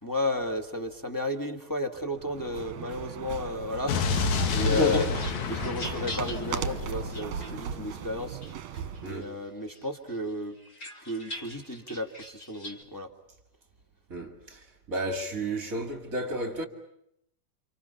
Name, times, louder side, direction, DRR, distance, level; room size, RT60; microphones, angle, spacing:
voice 1, 0.0-4.0 4.5-5.1 5.5-8.4 9.0-10.5 11.1-13.1, left 1 dB, 10° left, 1.2 m, -33 dB
sound 1, 2.1-9.2, right 8 dB, 60° right, 2.2 m, -38 dB
Explosion, 3.9-7.9, left 5 dB, 65° left, 2.6 m, -30 dB
voice 2, 4.6-5.1 9.0-9.3 14.1-14.6 14.9-16.7, equal, 30° right, 2.3 m, -30 dB
sound 2, 4.8-8.0 8.4-9.3 9.7-12.8, left 1 dB, 30° left, 2.8 m, -43 dB
30.0 x 28.0 x 5.7 m
omnidirectional pair, 3.9 m